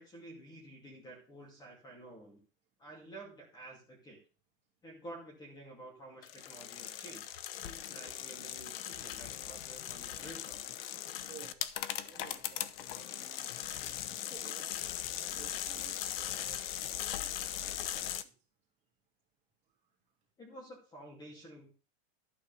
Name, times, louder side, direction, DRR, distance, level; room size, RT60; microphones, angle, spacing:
voice 1, 0.0-2.4 2.8-4.2 4.8-7.3 7.6-10.6 20.4-21.7, right 1 dB, 15° left, 1 dB, 2.3 m, -51 dB
sound 1, 6.2-18.2, left 11 dB, 65° left, 0.9 m, -39 dB
voice 2, 11.3-11.6 12.0-13.5 14.1-14.8 15.1-18.3, right 9 dB, 20° right, -1 dB, 3.0 m, -56 dB
12.0 x 4.5 x 6.8 m, 0.35 s
supercardioid pair, 170°, 32 cm